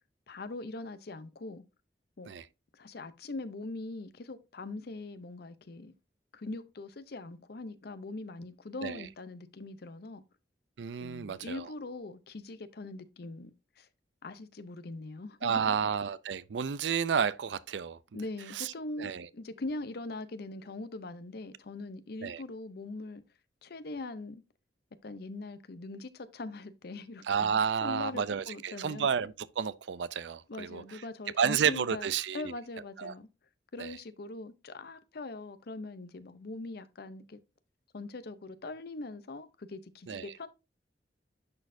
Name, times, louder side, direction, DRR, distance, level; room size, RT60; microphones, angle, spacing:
voice 1, 0.3-1.6 2.2-2.3 2.7-5.9 6.3-10.2 11.0-13.9 14.2-15.8 18.1-23.2 23.6-24.4 25.0-29.1 30.5-32.1 32.3-33.3 33.7-37.4 37.9-40.5, left 2 dB, 60° left, 0.6 m, -42 dB
voice 2, 10.8-11.7 15.4-18.0 18.5-18.7 19.0-19.3 22.2-22.4 27.2-31.0 31.4-32.5 33.0-33.1 33.8-34.0 40.1-40.3, right 7 dB, 85° right, 0.5 m, -31 dB
10.5 x 4.2 x 2.6 m
head